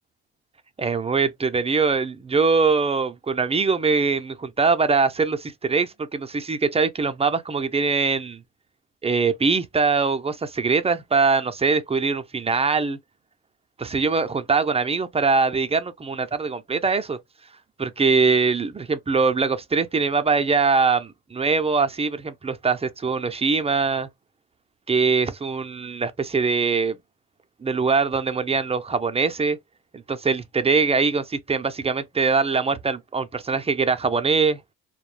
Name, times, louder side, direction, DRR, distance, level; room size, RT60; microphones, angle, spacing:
voice 1, 0.8-8.4 9.0-13.0 13.8-17.2 17.8-24.1 24.9-27.0 27.6-29.6 29.9-34.6, right 4 dB, 20° right, 0.4 m, -22 dB
2.2 x 2.1 x 3.1 m
cardioid pair, 90°, 30 cm